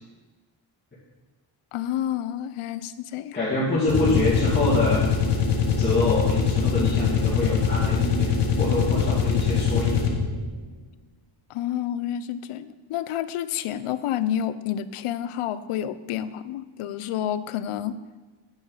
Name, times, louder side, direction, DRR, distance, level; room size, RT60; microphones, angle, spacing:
voice 1, 1.7-3.4 11.5-18.0, left 10 dB, 80° left, 13 dB, 0.6 m, -29 dB
voice 2, 3.3-5.0 5.8-8.3 8.6-10.0, left 2 dB, 20° left, -8 dB, 2.0 m, -25 dB
sound 1, 3.8-10.4, left 6 dB, 55° left, 1.6 m, -23 dB
9.1 x 6.2 x 5.5 m, 1.3 s
wide cardioid pair, 140°, 50 cm